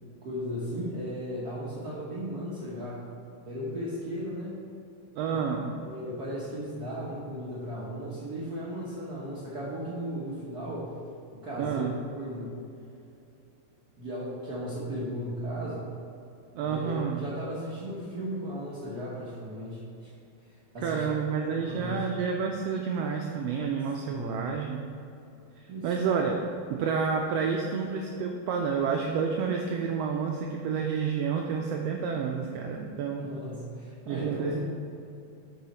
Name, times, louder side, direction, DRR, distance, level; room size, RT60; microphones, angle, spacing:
voice 1, 0.2-3.2 3.5-4.6 5.3-5.4 5.8-10.9 11.3-12.5 14.0-15.9 16.6-20.1 20.7-21.1 21.4-22.0 24.1-24.4 25.7-25.9 33.2-34.6, equal, 60° right, -8 dB, 1.0 m, -36 dB
voice 2, 5.2-5.7 11.6-11.9 16.5-17.2 20.8-24.9 25.6-26.4 26.7-33.3 34.1-34.8, right 6 dB, 80° right, 1 dB, 1.5 m, -29 dB
7.9 x 5.5 x 4.2 m, 2.6 s
omnidirectional pair, 3.3 m